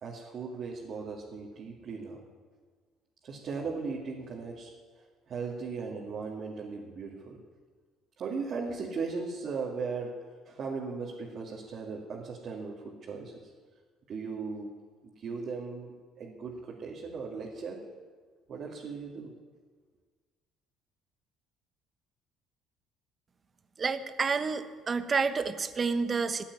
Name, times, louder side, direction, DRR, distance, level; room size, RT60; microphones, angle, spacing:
voice 1, 0.0-2.2 3.2-4.7 5.3-7.4 8.2-10.2 10.4-13.5 14.1-14.8 15.0-17.8 18.5-19.3, right 4 dB, 50° right, -3 dB, 2.5 m, -37 dB
voice 2, 23.8-26.4, right 5 dB, 35° right, 11 dB, 1.2 m, -29 dB
14.0 x 8.8 x 9.6 m, 1.5 s
supercardioid pair, 75°, 0 cm